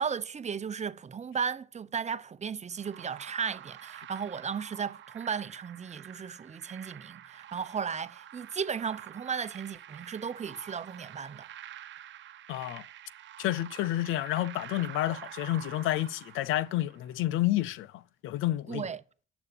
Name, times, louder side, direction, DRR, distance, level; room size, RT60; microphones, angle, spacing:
voice 1, 0.0-11.5 18.7-19.0, right 6 dB, 35° right, 0.8 m, -35 dB
sound 1, 2.8-17.1, right 11 dB, 70° right, 0.9 m, -48 dB
voice 2, 12.5-12.8 13.4-18.9, left 14 dB, 90° left, 0.6 m, -30 dB
11.0 x 7.1 x 8.5 m
cardioid pair, 90°, 20 cm